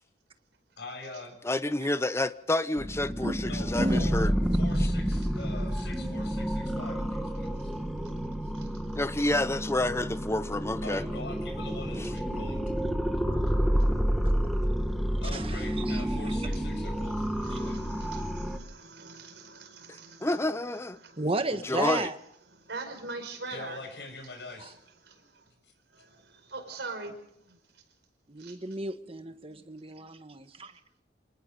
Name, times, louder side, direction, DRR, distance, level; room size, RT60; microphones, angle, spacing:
voice 1, 0.8-1.4 3.5-7.7 8.4-8.5 10.8-12.6 15.2-17.8 23.5-24.8 25.6-25.7, left 2 dB, 75° left, 7.0 m, -44 dB
voice 2, 1.4-4.3 9.0-11.0 19.9-21.0 21.5-22.1, left 2 dB, 15° left, 0.7 m, -29 dB
sound 1, 2.8-18.6, equal, ahead, 1.8 m, -29 dB
voice 3, 3.8-4.1 5.6-5.7 14.2-14.3 15.3-16.0 16.3-16.4 17.5-17.6 21.2-22.2 28.3-30.7, right 2 dB, 35° right, 1.4 m, -33 dB
voice 4, 17.0-20.5 21.0-21.3 22.5-23.8 25.0-25.5 25.9-27.8 28.4-28.6, right 3 dB, 75° right, 5.1 m, -43 dB
27.5 x 19.0 x 5.4 m
head